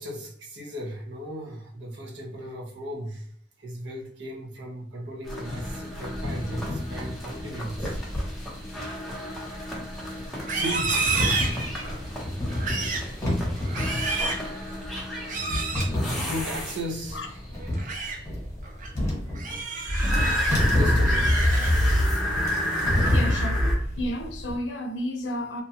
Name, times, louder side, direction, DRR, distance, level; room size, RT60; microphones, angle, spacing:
voice 1, 0.0-8.3 10.5-12.3 15.2-17.3 18.6-18.7 20.6-21.3, equal, 75° right, 0.9 m, -37 dB
sound 1, 5.3-17.2 19.9-23.7, left 1 dB, ahead, 0.8 m, -28 dB
sound 2, 6.2-24.5, left 1 dB, 15° left, 1.1 m, -30 dB
Livestock farm animals working animals, 10.4-12.0 12.5-13.1 13.6-14.5 15.2-15.9 17.6-18.2 18.6-18.9 19.3-20.5 20.9-21.9 22.3-22.7 23.1-23.5, right 4 dB, 45° right, 0.5 m, -30 dB
voice 2, 23.1-23.7 24.0-25.6, equal, 70° left, 0.6 m, -31 dB
2.6 x 2.3 x 2.7 m
head